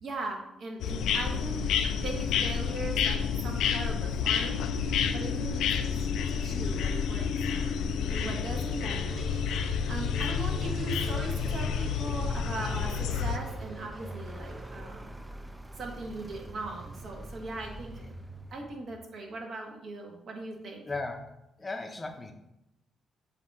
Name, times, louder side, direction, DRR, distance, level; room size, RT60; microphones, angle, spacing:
voice 1, 0.0-6.0 6.3-9.6 9.9-15.2 15.8-18.2 18.5-20.8, right 2 dB, 60° right, 1 dB, 1.5 m, -39 dB
sound 1, 0.8-13.4, left 7 dB, 80° left, 0.5 m, -29 dB
sound 2, 7.8-15.3, right 1 dB, 35° right, 1.8 m, -45 dB
Vehicle, 12.5-18.9, right 1 dB, 10° right, 0.4 m, -44 dB
voice 2, 20.8-22.3, left 3 dB, 25° left, 5 dB, 0.7 m, -37 dB
7.4 x 2.8 x 4.7 m, 0.89 s
cardioid pair, 90°, 0 cm